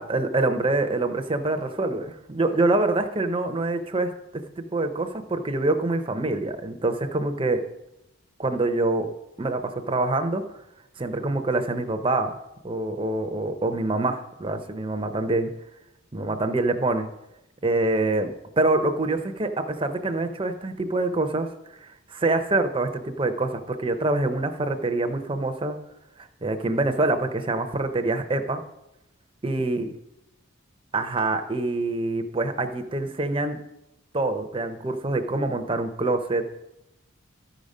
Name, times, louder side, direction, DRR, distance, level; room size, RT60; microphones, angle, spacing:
voice 1, 0.0-4.1 4.6-7.6 8.4-9.1 9.4-10.4 11.0-12.3 12.6-15.5 16.1-17.1 17.6-21.5 21.8-25.8 26.2-28.6 29.4-29.9 30.9-33.6 34.1-36.5, right 2 dB, 25° right, 7 dB, 0.6 m, -25 dB
13.5 x 5.1 x 5.3 m, 0.90 s
head